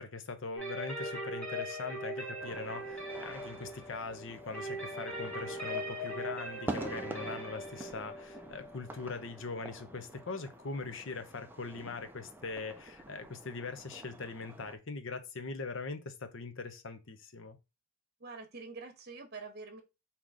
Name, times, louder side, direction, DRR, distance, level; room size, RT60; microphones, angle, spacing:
voice 1, 0.0-17.6, left 4 dB, 60° left, 0.7 m, -41 dB
sound 1, 0.6-10.2, equal, 5° left, 1.2 m, -41 dB
sound 2, 2.4-14.8, right 1 dB, 10° right, 0.4 m, -47 dB
voice 2, 18.2-19.8, right 4 dB, 50° right, 1.1 m, -46 dB
3.8 x 2.9 x 4.8 m
head